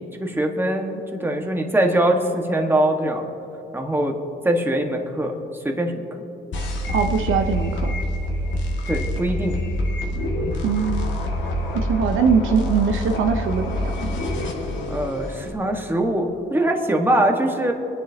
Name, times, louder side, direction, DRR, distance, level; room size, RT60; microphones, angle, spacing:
voice 1, 0.0-3.2 3.7-4.2 4.4-5.9 8.9-9.6 14.9-17.7, right 1 dB, 10° right, 2 dB, 1.6 m, -22 dB
sound 1, 6.5-15.5, left 1 dB, 70° left, 2.1 m, -26 dB
voice 2, 6.9-7.9 10.6-11.1 11.7-14.1, right 6 dB, 85° right, 5 dB, 0.9 m, -22 dB
25.5 x 10.0 x 2.9 m, 2.9 s
cardioid pair, 90°, 20 cm